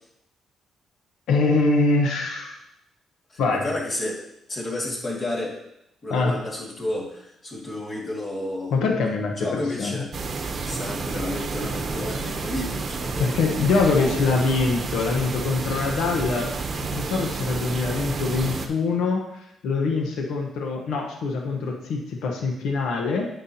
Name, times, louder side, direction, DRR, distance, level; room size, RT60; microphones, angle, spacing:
voice 1, 1.3-2.5 3.4-3.7 6.1-6.4 8.7-10.0 13.2-16.5 16.8-23.3, left 3 dB, 80° left, 2 dB, 1.1 m, -24 dB
voice 2, 3.6-4.2 4.5-5.6 6.0-8.7 9.4-10.1 10.7-13.3 13.8-14.4, left 1 dB, 40° left, -3 dB, 2.2 m, -31 dB
sound 1, 10.1-18.7, right 4 dB, 45° right, 0.8 m, -30 dB
8.8 x 6.0 x 2.9 m, 0.82 s
cardioid pair, 90°, 0 cm